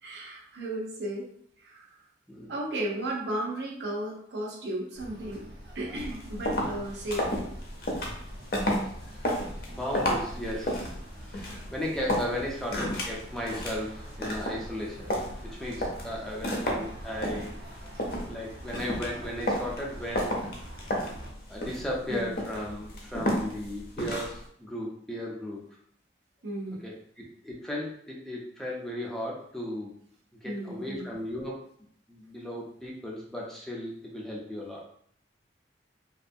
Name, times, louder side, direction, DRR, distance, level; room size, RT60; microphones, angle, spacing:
voice 1, 0.0-1.2 1.6-1.9 2.5-5.5 5.7-7.5 12.7-12.8 16.6-16.8 22.1-22.3 26.4-26.8 30.4-31.1, right 1 dB, 70° right, -2 dB, 0.6 m, -34 dB
sound 1, 4.9-21.3, right 1 dB, 85° right, 1.0 m, -46 dB
sound 2, 6.0-24.5, equal, 55° left, 0.5 m, -33 dB
voice 2, 9.7-15.1 15.4-17.5 18.3-20.4 21.5-25.6 26.8-29.9 30.4-31.6 32.1-34.8, left 1 dB, 5° left, -3 dB, 0.5 m, -36 dB
2.6 x 2.3 x 2.6 m, 0.66 s
head